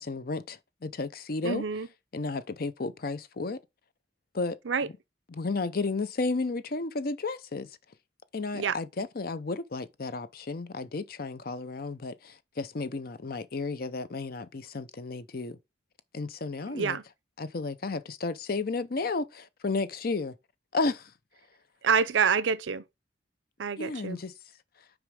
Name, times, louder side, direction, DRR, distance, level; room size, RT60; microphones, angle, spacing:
voice 1, 0.0-1.6 2.1-3.6 4.3-4.6 5.3-7.8 8.3-15.6 16.1-17.0 17.4-20.4 20.7-21.1 23.8-24.3, left 3 dB, 55° left, 0.6 m, -33 dB
voice 2, 1.4-1.9 4.7-4.9 8.5-8.7 16.7-17.0 21.8-22.8 23.6-24.2, right 6 dB, 85° right, 0.6 m, -27 dB
6.2 x 4.9 x 4.8 m
head